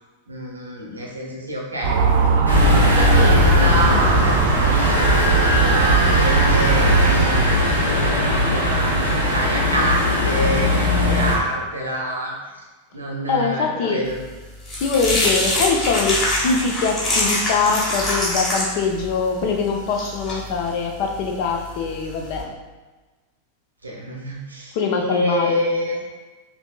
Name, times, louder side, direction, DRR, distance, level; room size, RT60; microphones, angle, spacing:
voice 1, 0.3-12.6 12.9-14.2 23.8-26.0, right 1 dB, 80° right, -2 dB, 0.8 m, -27 dB
Motor vehicle (road) / Siren, 1.8-7.5, right 6 dB, 55° right, 0.4 m, -19 dB
sound 1, 2.5-11.3, left 2 dB, 80° left, 0.8 m, -19 dB
voice 2, 13.3-14.0 14.8-22.5 24.7-25.6, left 5 dB, 45° left, 2 dB, 0.5 m, -23 dB
sound 2, 14.2-22.4, left 1 dB, 25° left, 1.1 m, -25 dB
5.1 x 2.7 x 2.2 m, 1.2 s
figure-of-eight pair, 90°, 0 cm